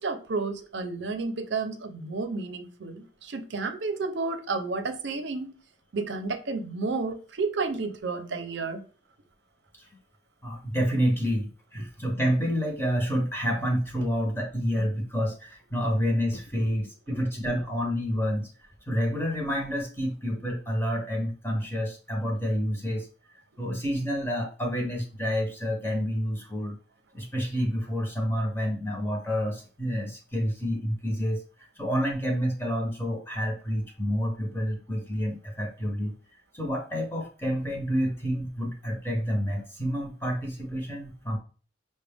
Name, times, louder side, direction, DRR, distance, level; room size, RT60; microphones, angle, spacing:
voice 1, 0.0-5.6 5.9-8.8, right 3 dB, 70° right, 0.6 m, -31 dB
voice 2, 10.4-18.5 18.9-23.1 23.6-26.8 27.1-36.1 36.5-41.4, equal, 10° left, 0.7 m, -29 dB
5.9 x 2.2 x 3.4 m
head